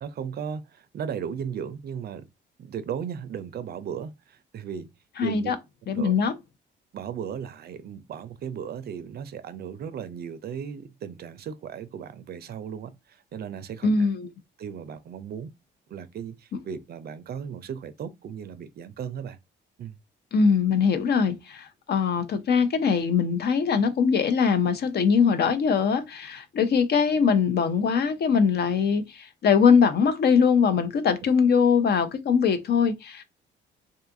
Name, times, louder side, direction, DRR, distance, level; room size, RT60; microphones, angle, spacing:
voice 1, 0.0-2.3 2.6-4.9 5.2-5.5 5.9-6.1 6.9-14.1 14.6-15.5 15.9-19.4 19.8-20.0, right 7 dB, 50° right, 0.4 m, -36 dB
voice 2, 5.2-5.6 5.9-6.3 13.8-14.3 20.3-33.2, left 6 dB, 55° left, 0.5 m, -22 dB
2.6 x 2.4 x 2.6 m
cardioid pair, 90°, 20 cm